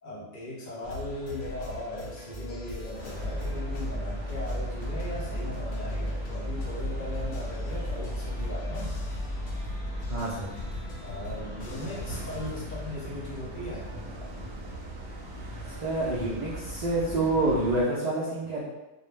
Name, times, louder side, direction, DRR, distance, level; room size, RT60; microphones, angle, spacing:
voice 1, 0.0-9.0 11.0-13.9, left 1 dB, 55° left, -7 dB, 0.6 m, -38 dB
sound 1, 0.8-12.5, left 2 dB, 80° left, 0.9 m, -40 dB
sound 2, 2.9-17.8, equal, 60° right, 0.8 m, -41 dB
Mechanical fan, 3.2-10.2, equal, 20° right, 0.6 m, -34 dB
voice 2, 10.1-10.5 15.8-18.6, right 2 dB, 80° right, -6 dB, 0.3 m, -27 dB
2.2 x 2.0 x 3.1 m, 1.1 s
omnidirectional pair, 1.2 m